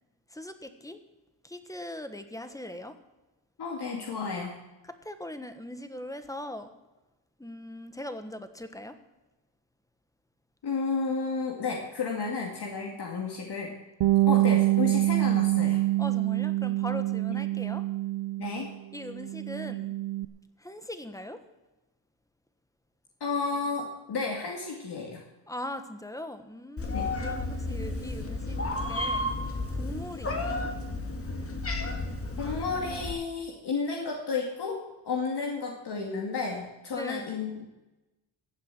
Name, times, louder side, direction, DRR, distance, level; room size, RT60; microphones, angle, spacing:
voice 1, 0.3-1.0 1.4-3.0 4.8-6.7 7.4-9.0 16.0-17.8 18.9-20.0 20.6-21.4 25.5-28.6 28.9-29.3 29.7-30.7 36.9-37.4, left 1 dB, 5° left, 8 dB, 1.4 m, -40 dB
voice 2, 3.6-4.6 10.6-13.7 14.3-15.8 18.4-18.7 23.2-25.2 26.9-27.1 32.4-37.6, left 4 dB, 60° left, -1 dB, 2.4 m, -32 dB
Bass guitar, 14.0-18.7 19.0-20.3, right 17 dB, 70° right, 0.7 m, -26 dB
Meow, 26.8-33.1, left 2 dB, 30° left, 2.1 m, -32 dB
15.5 x 7.7 x 7.5 m, 1.0 s
cardioid pair, 100°, 45 cm